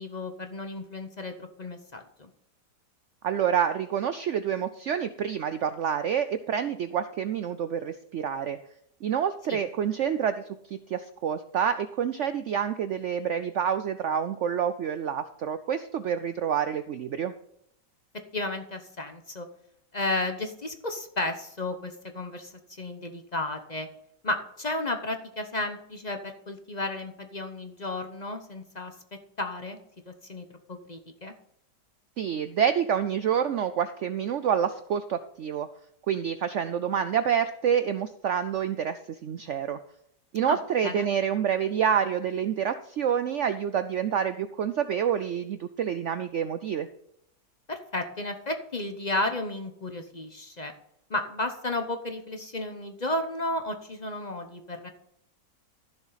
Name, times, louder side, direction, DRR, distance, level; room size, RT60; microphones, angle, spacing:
voice 1, 0.0-2.3 9.5-9.6 18.3-19.5 19.9-23.9 24.2-28.9 29.4-29.8 30.1-31.3 40.5-40.6 40.8-41.1 47.7-50.7 51.1-54.9, left 2 dB, 35° left, 6 dB, 0.7 m, -33 dB
voice 2, 3.2-8.6 9.0-10.4 10.7-17.3 32.2-35.7 36.1-39.8 40.3-46.9, right 8 dB, 85° right, 11 dB, 0.6 m, -28 dB
13.0 x 7.0 x 4.0 m, 0.74 s
omnidirectional pair, 1.9 m